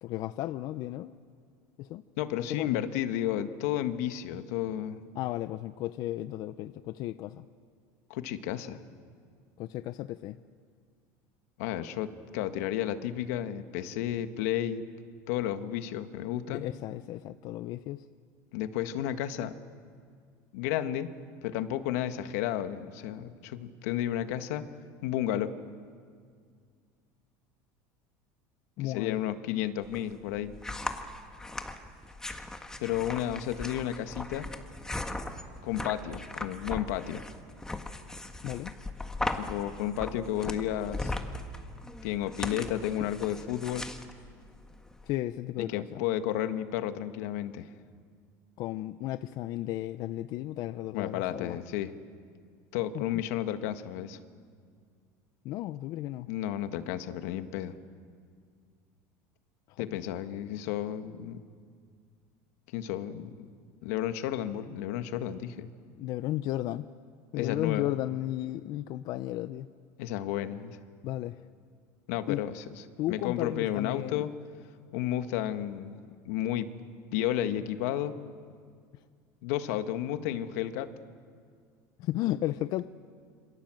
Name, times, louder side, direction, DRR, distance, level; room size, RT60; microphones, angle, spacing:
voice 1, 0.0-1.1 1.8-2.0 2.5-2.8 5.1-7.5 9.6-10.4 16.5-18.0 28.8-29.2 38.4-38.7 45.0-46.0 48.6-51.6 52.9-53.0 55.4-56.3 59.7-59.8 66.0-66.8 67.3-69.7 71.0-71.4 72.3-72.4 73.0-74.3 82.0-82.9, left 15 dB, 50° left, 13 dB, 0.6 m, -34 dB
voice 2, 2.2-5.0 8.1-8.8 11.6-14.8 15.3-16.7 18.5-19.5 20.5-21.1 21.4-24.6 25.0-25.5 28.8-30.5 32.8-34.5 35.6-37.3 39.3-41.1 42.0-43.9 45.6-47.7 50.9-51.9 52.7-54.2 56.3-57.7 59.8-61.4 62.7-63.4 63.8-65.7 67.3-67.9 70.0-70.8 72.1-72.6 73.1-74.3 74.9-76.7 77.1-78.1 79.4-80.9, left 11 dB, 80° left, 9 dB, 1.6 m, -32 dB
sound 1, 29.8-45.1, left 2 dB, 10° left, 1.6 m, -38 dB
27.5 x 26.5 x 7.7 m, 2.1 s
supercardioid pair, 140°, 8 cm